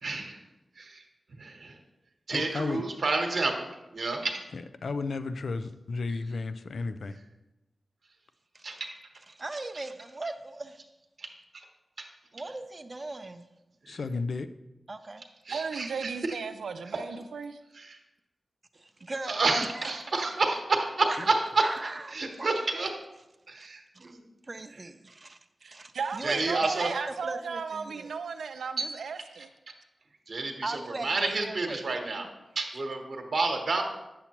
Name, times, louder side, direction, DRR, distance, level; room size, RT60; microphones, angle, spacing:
voice 1, 0.0-0.4 0.8-1.0 1.4-1.8 2.3-3.6 3.9-4.4 8.6-8.9 11.2-11.3 12.0-12.1 13.8-14.0 15.4-16.1 17.8-18.0 19.3-21.3 22.1-22.9 23.5-24.2 26.2-26.9 28.8-28.9 30.3-32.3 32.5-33.8, right 3 dB, 70° right, 1.1 m, -30 dB
voice 2, 2.3-2.8 4.5-7.2 13.9-14.5, left 3 dB, 75° left, 0.4 m, -33 dB
voice 3, 9.4-10.8 12.3-13.5 14.9-15.2 18.8-19.4 19.7-20.3 21.1-21.3 21.6-22.9 23.6-23.7 23.9-24.1 24.5-26.9 27.2-28.1 30.6-31.8, right 2 dB, 40° right, 0.5 m, -39 dB
voice 4, 15.5-17.6 25.6-29.5, right 5 dB, 90° right, 0.4 m, -35 dB
8.4 x 7.0 x 3.0 m
cardioid pair, 55°, 0 cm